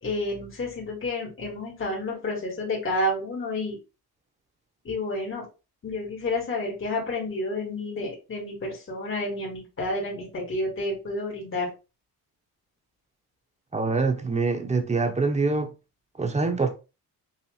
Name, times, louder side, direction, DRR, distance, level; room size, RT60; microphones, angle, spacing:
voice 1, 0.0-3.8 4.8-5.4 5.8-11.7, left 2 dB, 35° left, 2.0 m, -30 dB
voice 2, 13.7-15.7 16.2-16.7, right 3 dB, 20° right, 0.9 m, -24 dB
5.7 x 2.8 x 2.3 m
cardioid pair, 95°, 37 cm